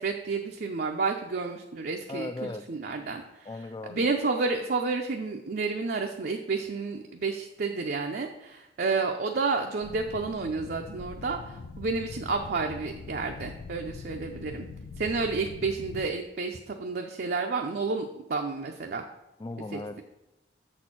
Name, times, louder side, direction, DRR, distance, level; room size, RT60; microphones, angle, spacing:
voice 1, 0.0-3.5 3.9-14.7 15.0-19.0 19.7-20.0, right 4 dB, 60° right, 3 dB, 0.5 m, -30 dB
voice 2, 2.1-2.6 3.5-4.1 19.4-20.0, left 2 dB, 25° left, 11 dB, 0.4 m, -37 dB
sound 1, 9.8-16.1, left 4 dB, 85° left, 0.4 m, -42 dB
7.1 x 4.3 x 6.0 m, 0.95 s
head